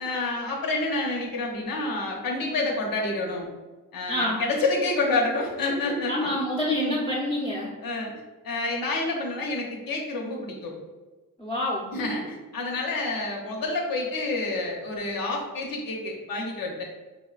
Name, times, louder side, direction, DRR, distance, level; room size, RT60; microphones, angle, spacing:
voice 1, 0.0-3.5 3.9-6.3 6.8-7.0 7.8-8.1 8.4-10.7 11.9-16.8, left 2 dB, 90° left, -1 dB, 0.8 m, -28 dB
voice 2, 4.1-4.4 6.1-7.7 11.4-11.9, left 1 dB, 15° left, -6 dB, 0.7 m, -27 dB
5.1 x 2.1 x 2.4 m, 1.2 s
wide cardioid pair, 115°, 33 cm